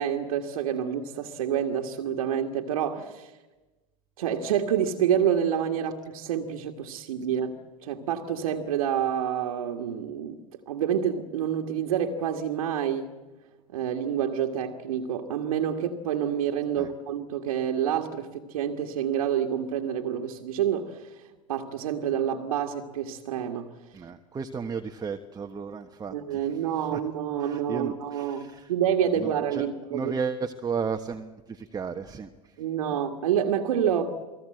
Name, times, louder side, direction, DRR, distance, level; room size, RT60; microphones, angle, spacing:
voice 1, 0.0-3.3 4.2-10.4 10.7-13.1 13.7-23.7 26.1-30.1 32.6-34.2, right 9 dB, 75° right, 1.8 m, -28 dB
voice 2, 23.9-27.0 27.4-28.7 29.1-32.6, right 5 dB, 20° right, 1.3 m, -34 dB
29.0 x 20.0 x 7.8 m
hypercardioid pair, 90°, 19 cm